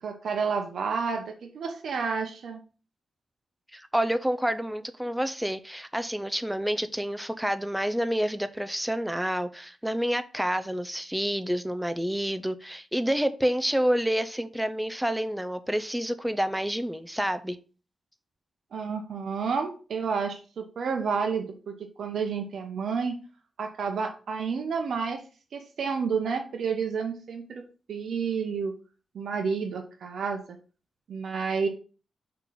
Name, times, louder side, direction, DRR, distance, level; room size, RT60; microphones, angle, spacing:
voice 1, 0.0-2.6 18.7-23.2 23.6-25.2 25.5-28.7 29.1-30.4 31.1-31.7, right 5 dB, 70° right, 0.8 m, -30 dB
voice 2, 3.7-17.6, equal, 5° right, 0.6 m, -28 dB
5.8 x 3.8 x 5.8 m
cardioid pair, 110°, 0 cm